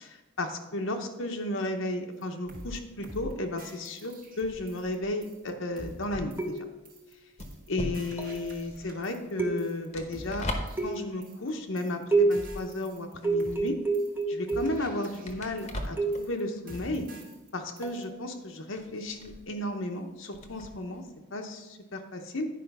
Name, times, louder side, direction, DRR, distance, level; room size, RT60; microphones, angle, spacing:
voice 1, 0.4-6.5 7.7-10.5 10.8-13.8 14.3-17.1 17.5-21.0 21.3-22.5, left 1 dB, 70° left, 4 dB, 0.9 m, -34 dB
sound 1, 2.2-2.3 2.5-2.8 3.0-3.3 3.6-5.0 5.2-5.5 5.8-6.0 6.3-6.6 6.9-7.1 7.4-7.7 7.9-9.3 9.6-9.9 10.1-11.5 11.8-12.0 12.3-13.1 13.4-13.7 13.9-14.2 14.5-15.9 16.1-16.4 16.7-17.5 17.8-18.0, right 1 dB, 40° right, 1.4 m, -46 dB
sound 2, 2.5-12.7 12.9-21.1, left 1 dB, 30° left, 0.9 m, -42 dB
sound 3, 6.4-6.9 8.2-8.5 9.4-10.0 10.8-11.3 12.1-12.6 13.2-14.9 16.0-16.4 17.8-18.1, right 3 dB, 10° right, 0.7 m, -29 dB
10.0 x 5.1 x 5.4 m, 1.1 s
head